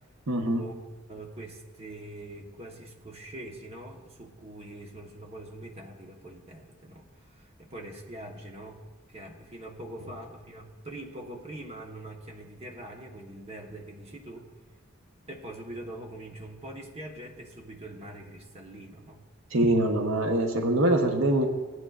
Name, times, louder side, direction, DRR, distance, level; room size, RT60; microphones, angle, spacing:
voice 1, 0.3-0.6 19.5-21.5, right 1 dB, 70° right, 3 dB, 0.9 m, -24 dB
voice 2, 1.1-8.8 9.1-14.5 15.3-19.2, right 1 dB, 30° right, 0 dB, 1.1 m, -43 dB
17.0 x 9.2 x 2.4 m, 1.3 s
head